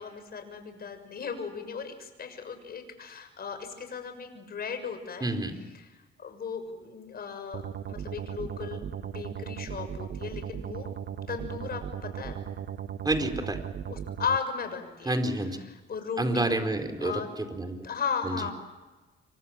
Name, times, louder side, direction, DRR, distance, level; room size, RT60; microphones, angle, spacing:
voice 1, 0.0-5.3 5.8-7.6 7.9-10.9 11.3-12.4 13.9-15.2 15.9-16.5 17.0-17.3 17.8-18.5, left 6 dB, 50° left, 7 dB, 6.7 m, -36 dB
voice 2, 5.2-5.6 13.0-13.6 15.0-15.6 16.2-17.9 18.2-18.5, right 2 dB, 20° right, 7 dB, 4.4 m, -29 dB
sound 1, 7.5-14.4, right 9 dB, 55° right, 1.3 m, -37 dB
28.0 x 25.0 x 7.6 m, 1.2 s
cardioid pair, 90°, 20 cm